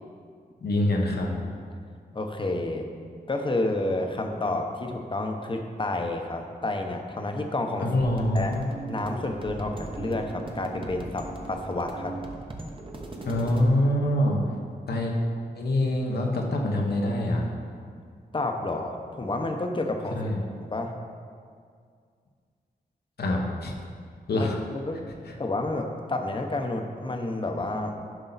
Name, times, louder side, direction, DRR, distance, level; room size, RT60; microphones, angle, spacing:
voice 1, 0.6-1.3 7.8-8.7 13.3-14.4 14.9-15.1 15.6-17.4 20.1-20.4 23.2-23.7 24.3-24.6, left 1 dB, 80° left, 0 dB, 1.2 m, -25 dB
voice 2, 2.1-2.9 3.3-7.9 8.3-8.5 8.9-12.2 18.3-20.9 24.3-25.0 25.4-27.9, left 2 dB, 30° left, 4 dB, 0.9 m, -30 dB
sound 1, 8.0-13.6, right 2 dB, 30° right, 1.0 m, -39 dB
11.0 x 5.5 x 4.1 m, 2.1 s
wide cardioid pair, 85°, 16 cm